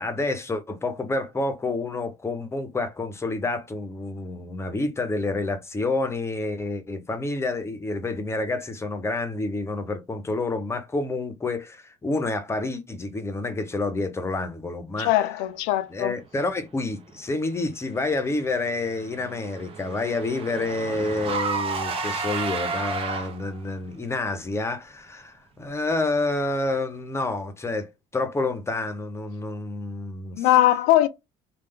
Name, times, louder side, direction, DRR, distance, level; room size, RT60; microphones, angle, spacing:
voice 1, 0.0-15.1 15.9-30.5, left 2 dB, 15° left, 0.9 m, -28 dB
voice 2, 15.0-16.1 30.3-31.1, left 14 dB, 80° left, 0.5 m, -20 dB
Car / Engine, 18.6-23.6, right 4 dB, 40° right, 1.1 m, -31 dB
3.3 x 2.4 x 3.6 m
cardioid pair, 110°, 15 cm